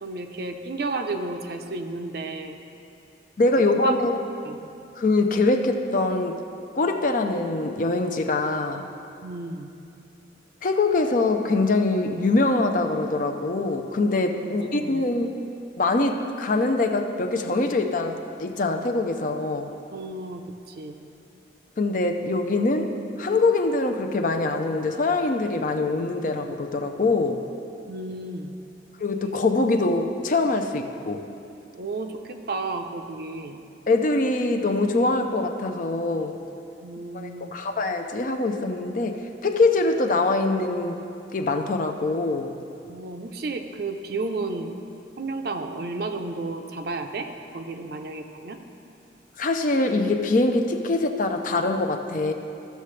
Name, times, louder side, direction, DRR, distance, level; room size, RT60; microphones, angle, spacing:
voice 1, 0.0-2.6 3.8-4.0 4.4-4.7 9.2-9.7 14.4-15.0 19.9-21.0 27.9-28.5 31.8-33.6 36.8-37.5 42.8-44.8 45.2-47.3 47.5-48.6, right 3 dB, 55° right, 6 dB, 0.5 m, -32 dB
voice 2, 3.4-4.2 5.0-6.4 6.8-8.9 10.6-15.3 15.8-19.7 21.8-27.4 29.0-31.3 33.9-36.4 37.1-41.0 41.3-42.6 49.4-52.3, left 2 dB, 45° left, 5 dB, 0.5 m, -23 dB
14.5 x 6.7 x 3.2 m, 2.6 s
head